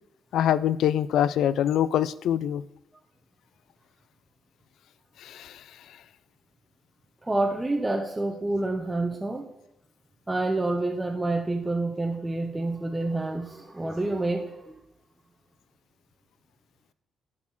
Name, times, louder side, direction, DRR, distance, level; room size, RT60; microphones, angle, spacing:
voice 1, 0.3-2.6 5.2-5.6, left 10 dB, 75° left, 18 dB, 0.4 m, -24 dB
voice 2, 7.2-9.5 10.3-14.8, right 2 dB, 15° right, 3 dB, 0.9 m, -28 dB
11.5 x 4.3 x 7.1 m, 0.86 s
cardioid pair, 90°, 0 cm